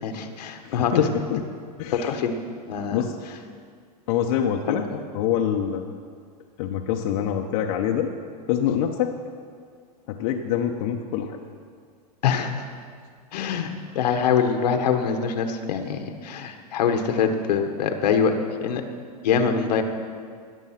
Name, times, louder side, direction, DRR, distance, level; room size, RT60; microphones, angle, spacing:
voice 1, 0.0-1.1 2.0-2.3 2.7-3.0 4.7-5.0 12.2-12.5 13.3-18.3 18.6-18.8 19.2-19.8, left 6 dB, 80° left, 6 dB, 1.3 m, -24 dB
voice 2, 0.6-1.4 1.8-2.2 2.9-3.2 4.1-4.8 5.1-5.9 6.6-8.1 8.5-9.1 10.1-11.4, left 9 dB, 55° left, 2 dB, 0.9 m, -25 dB
19.0 x 7.4 x 5.9 m, 2.1 s
supercardioid pair, 130°, 21 cm